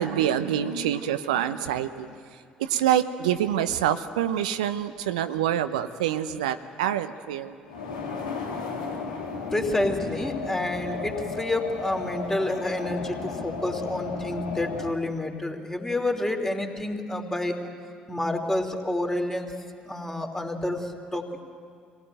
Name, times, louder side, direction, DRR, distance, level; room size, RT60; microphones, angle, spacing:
voice 1, 0.0-2.2 2.6-7.6, right 10 dB, 80° right, 10 dB, 0.7 m, -26 dB
sound 1, 7.7-14.9, left 4 dB, 85° left, 2.2 m, -34 dB
voice 2, 9.5-17.6 18.1-19.5 19.8-21.3, left 1 dB, 10° left, 3 dB, 3.1 m, -29 dB
25.0 x 17.5 x 9.1 m, 2.2 s
hypercardioid pair, 50°, 4 cm